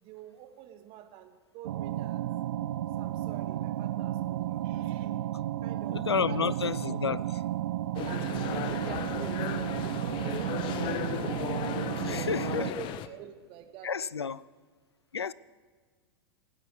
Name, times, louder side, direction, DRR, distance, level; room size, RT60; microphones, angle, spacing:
voice 1, 0.0-2.2 3.0-5.2 5.6-6.4 8.0-9.6 10.0-11.1 12.0-14.3, right 11 dB, 45° right, 1.7 m, -47 dB
sound 1, 1.6-12.7, right 13 dB, 65° right, 0.4 m, -33 dB
voice 2, 5.9-7.4 10.8-10.9 12.0-12.7 13.8-14.5 15.1-15.3, left 6 dB, 90° left, 0.4 m, -31 dB
sound 2, 7.9-13.1, left 11 dB, 40° left, 0.8 m, -35 dB
25.5 x 9.5 x 4.9 m
figure-of-eight pair, 95°, 13 cm